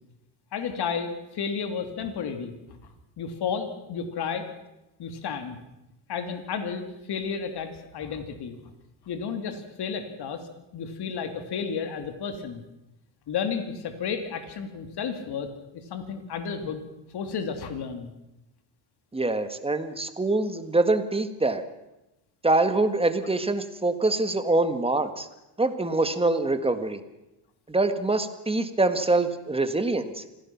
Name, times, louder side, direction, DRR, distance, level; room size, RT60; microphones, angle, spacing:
voice 1, 0.5-2.8 3.2-4.5 5.0-5.6 6.1-8.6 9.0-12.6 13.3-16.8 17.1-18.1, left 6 dB, 55° left, 7 dB, 2.7 m, -32 dB
voice 2, 19.1-21.6 22.4-25.3 25.6-27.0 27.7-30.2, right 2 dB, 10° right, 9 dB, 1.7 m, -24 dB
26.0 x 17.0 x 6.0 m, 0.95 s
cardioid pair, 125°, 46 cm